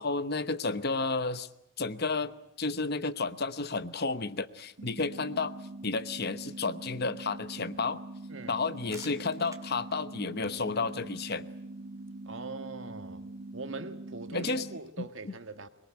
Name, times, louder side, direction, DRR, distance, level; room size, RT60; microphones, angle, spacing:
voice 1, 0.0-1.5 1.8-2.3 2.6-5.6 5.8-8.0 8.5-11.5 14.3-14.7 15.0-15.3, left 3 dB, 50° left, 13 dB, 1.0 m, -32 dB
sound 1, 4.8-14.8, right 2 dB, 90° right, 1.1 m, -43 dB
voice 2, 8.3-8.6 12.3-13.3 13.5-15.7, right 3 dB, 70° right, 9 dB, 1.6 m, -42 dB
sound 2, 8.6-14.1, right 4 dB, 15° right, 2.8 m, -58 dB
23.0 x 21.5 x 8.8 m, 0.79 s
head